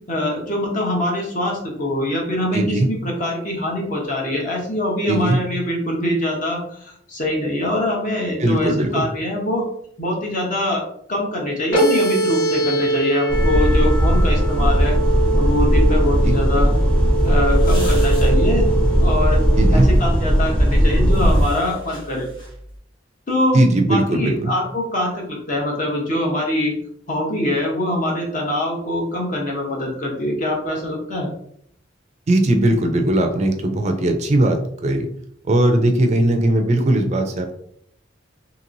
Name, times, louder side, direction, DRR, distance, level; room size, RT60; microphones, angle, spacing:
voice 1, 0.1-9.6 10.0-10.8 11.1-15.0 15.4-16.7 17.2-18.7 19.0-19.4 19.7-22.3 23.3-23.6 23.9-26.7 27.1-31.3, left 1 dB, 45° left, -1 dB, 1.0 m, -23 dB
voice 2, 2.5-2.9 5.1-5.4 8.4-9.1 16.2-16.4 19.6-19.9 23.5-24.5 32.3-35.1 35.5-37.5, right 1 dB, 40° right, 5 dB, 0.4 m, -18 dB
sound 1, 11.7-19.7, right 2 dB, 85° left, 1.3 m, -23 dB
sound 2, 13.3-21.4, equal, 5° left, 0.7 m, -17 dB
sound 3, 16.6-22.8, equal, 25° left, 1.2 m, -39 dB
2.9 x 2.9 x 2.6 m, 0.66 s
head